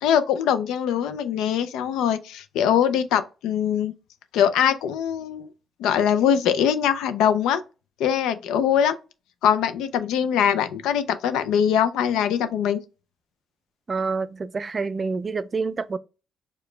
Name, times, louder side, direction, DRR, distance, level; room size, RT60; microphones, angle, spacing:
voice 1, 0.0-3.9 4.3-5.5 5.8-7.6 8.0-9.0 9.4-12.8, left 9 dB, 90° left, 0.4 m, -22 dB
voice 2, 13.9-16.0, right 4 dB, 35° right, 0.3 m, -27 dB
4.8 x 2.2 x 3.2 m
cardioid pair, 90°, 0 cm